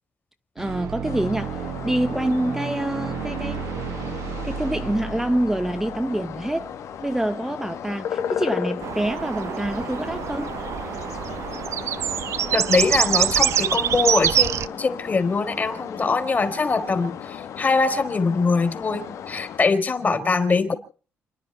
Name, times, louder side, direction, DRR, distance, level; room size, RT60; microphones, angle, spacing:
voice 1, 0.6-3.7 4.4-6.7 7.0-10.6, right 1 dB, 5° right, 0.8 m, -26 dB
sound 1, 0.6-7.2, right 8 dB, 85° right, 2.0 m, -33 dB
sound 2, 1.0-19.6, left 8 dB, 70° left, 1.4 m, -35 dB
sound 3, 8.8-14.7, right 10 dB, 65° right, 0.8 m, -24 dB
voice 2, 12.5-20.7, left 4 dB, 35° left, 3.5 m, -23 dB
30.0 x 10.5 x 4.4 m
cardioid pair, 100°, 5 cm